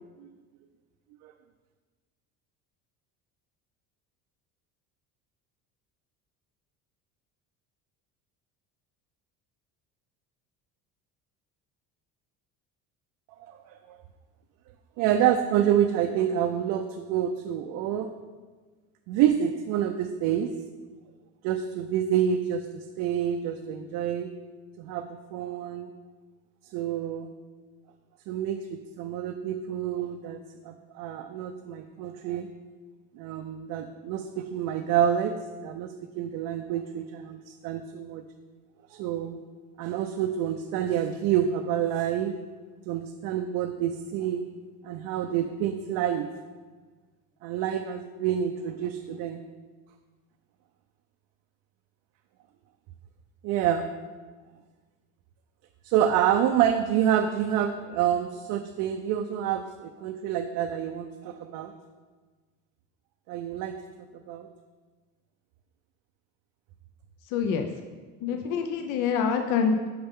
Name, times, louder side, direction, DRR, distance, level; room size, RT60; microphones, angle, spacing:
voice 1, 13.4-14.0 15.0-18.1 19.1-20.5 21.4-24.3 24.8-25.9 26.7-27.3 28.3-32.5 33.1-35.3 35.6-38.3 38.9-39.4 39.8-42.4 42.9-44.4 44.8-46.3 47.4-49.4 53.4-53.9 55.8-61.7 63.3-63.7 64.1-64.5 68.3-68.4, right 9 dB, 65° right, 5 dB, 0.5 m, -28 dB
voice 2, 67.3-67.7 68.2-69.9, left 6 dB, 60° left, 5 dB, 0.6 m, -26 dB
8.7 x 5.2 x 3.6 m, 1.4 s
cardioid pair, 155°, 35 cm